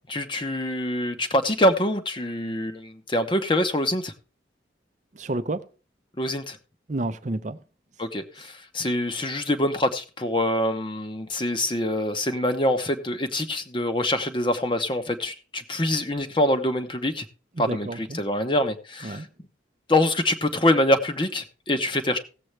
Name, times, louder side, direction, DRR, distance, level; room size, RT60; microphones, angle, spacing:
voice 1, 0.1-4.1 6.2-6.6 8.0-17.2 17.6-19.2 19.9-22.2, left 1 dB, 25° left, 0.9 m, -25 dB
voice 2, 5.1-5.6 6.9-7.6 17.6-18.2 19.0-19.3, right 2 dB, 40° right, 0.6 m, -30 dB
17.0 x 7.7 x 3.2 m
head